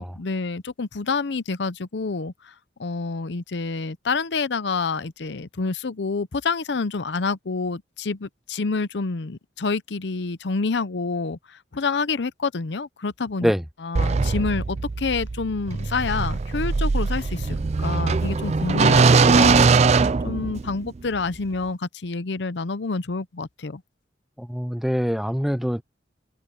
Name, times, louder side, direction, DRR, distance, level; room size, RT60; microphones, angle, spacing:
voice 1, 0.0-2.5 2.8-13.5 13.8-19.9 20.2-23.8, left 4 dB, 65° left, 0.7 m, -28 dB
sound 1, 14.0-20.9, right 4 dB, 35° right, 0.4 m, -20 dB
voice 2, 24.4-25.8, equal, ahead, 0.7 m, -24 dB
head